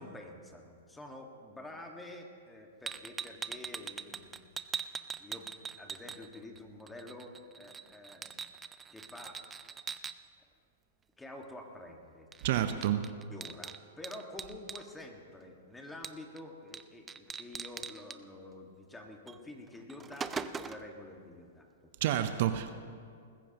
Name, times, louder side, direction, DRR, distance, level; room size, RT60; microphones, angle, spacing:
voice 1, 0.0-4.5 5.2-8.4 8.9-9.4 11.2-12.3 12.5-12.8 13.0-21.9, left 1 dB, 10° left, 2 dB, 1.7 m, -48 dB
sound 1, 2.9-6.6 6.9-10.1 12.3-12.4 12.7-14.8 16.0-16.4 16.7-16.8 17.1-18.2 19.3-19.4 19.8-20.9, right 6 dB, 15° right, 0.4 m, -41 dB
voice 2, 12.4-13.0 22.0-22.7, right 11 dB, 55° right, 10 dB, 0.7 m, -29 dB
20.0 x 15.0 x 3.0 m, 2.3 s
hypercardioid pair, 120°, 0 cm